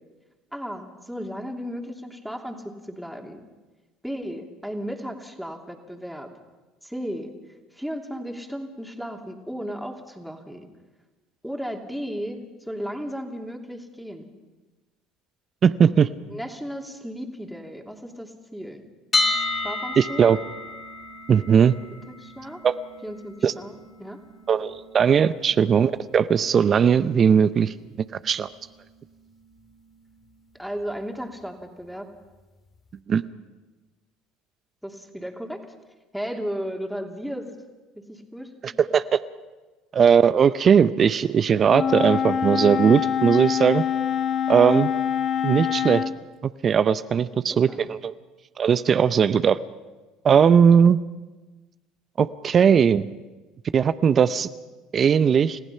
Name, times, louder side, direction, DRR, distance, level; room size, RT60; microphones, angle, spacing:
voice 1, 0.5-3.4 4.0-6.3 6.8-7.3 7.7-10.7 11.4-14.3 16.3-18.8 19.6-20.3 22.1-22.6 23.0-24.2 30.6-32.1 34.8-35.6 36.1-37.5 37.9-38.8 47.3-47.4 47.7-47.9, equal, ahead, 2 dB, 2.8 m, -35 dB
voice 2, 15.6-16.1 20.0-20.4 21.3-21.7 22.6-22.7 23.4-23.5 24.5-27.7 28.2-28.5 33.1-33.2 38.6-39.2 39.9-43.8 44.5-44.9 45.4-46.0 46.4-48.1 48.6-49.6 50.2-51.0 52.2-53.1 53.7-54.5 54.9-55.6, right 7 dB, 40° right, 14 dB, 0.6 m, -19 dB
sound 1, 19.1-31.0, left 2 dB, 30° left, 2.1 m, -34 dB
Wind instrument woodwind instrument, 41.7-46.1, left 8 dB, 50° left, 1.1 m, -25 dB
30.0 x 15.0 x 5.7 m, 1.2 s
hypercardioid pair, 70°, 0 cm